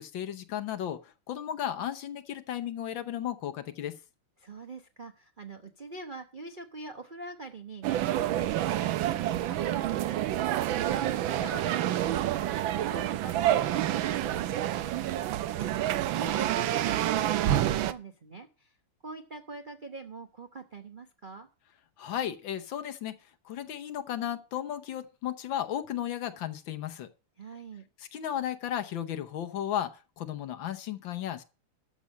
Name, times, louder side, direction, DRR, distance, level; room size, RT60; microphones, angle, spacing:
voice 1, 0.0-4.0 22.0-23.1 23.4-27.1 28.1-31.4, left 10 dB, 65° left, 10 dB, 1.5 m, -34 dB
voice 2, 4.4-18.8 19.0-21.5 27.4-27.9, right 3 dB, 55° right, 7 dB, 0.5 m, -44 dB
sound 1, 7.8-17.9, right 12 dB, 70° right, 1.4 m, -28 dB
13.0 x 6.2 x 6.1 m, 0.33 s
omnidirectional pair, 2.4 m